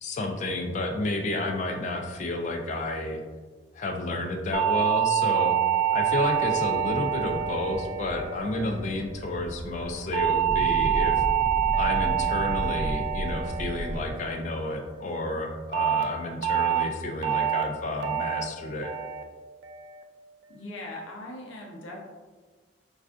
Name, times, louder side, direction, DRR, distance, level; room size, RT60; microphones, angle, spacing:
voice 1, 0.0-3.2 3.7-5.6 5.9-11.1 11.7-18.9, left 2 dB, 35° left, 3 dB, 0.3 m, -30 dB
sound 1, 4.5-9.0 10.1-14.6 15.7-16.0 16.4-16.8 17.2-17.6 18.0-18.4 18.8-19.2 19.6-20.0, right 10 dB, 60° right, 0.3 m, -26 dB
sound 2, 6.4-14.1, equal, 25° right, 0.9 m, -35 dB
voice 2, 20.5-22.0, left 1 dB, 75° left, -1 dB, 0.6 m, -39 dB
4.2 x 2.3 x 2.4 m, 1.4 s
head